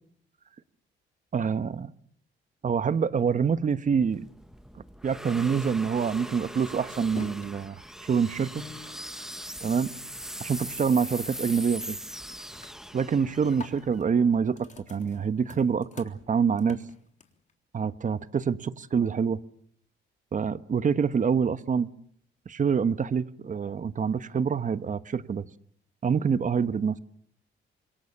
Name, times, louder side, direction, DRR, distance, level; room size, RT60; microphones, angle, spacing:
voice 1, 1.3-1.9 2.6-4.3 5.0-8.6 9.6-9.9 10.4-12.0 12.9-16.8 17.7-19.4 20.3-21.9 22.5-25.5 26.0-26.9, right 6 dB, 40° right, 1.2 m, -26 dB
sound 1, 3.5-14.8, equal, ahead, 1.6 m, -41 dB
sound 2, 5.8-10.4 10.7-11.1 11.4-11.9 12.2-17.5, left 4 dB, 35° left, 3.6 m, -48 dB
27.0 x 22.0 x 7.2 m
cardioid pair, 90°, 20 cm